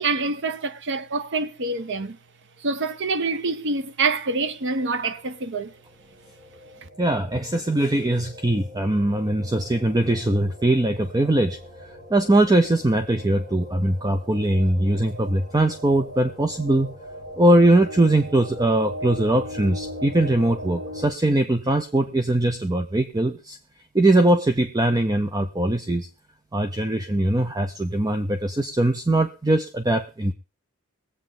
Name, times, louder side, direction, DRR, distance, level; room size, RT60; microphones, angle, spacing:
voice 1, 0.0-2.2 2.6-5.7, right 3 dB, 60° right, 0.9 m, -26 dB
sound 1, 5.1-21.0, equal, 35° right, 6.3 m, -40 dB
voice 2, 7.0-16.9 17.4-23.6 23.9-26.1 26.5-30.3, right 1 dB, 20° right, 0.6 m, -21 dB
21.5 x 8.2 x 3.8 m
head